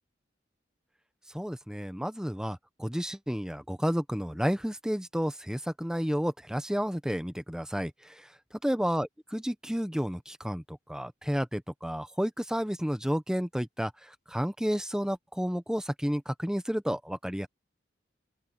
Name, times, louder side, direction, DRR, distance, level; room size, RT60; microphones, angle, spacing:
voice 1, 1.3-8.2 8.6-17.5, equal, 5° right, 1.0 m, -31 dB
open air
head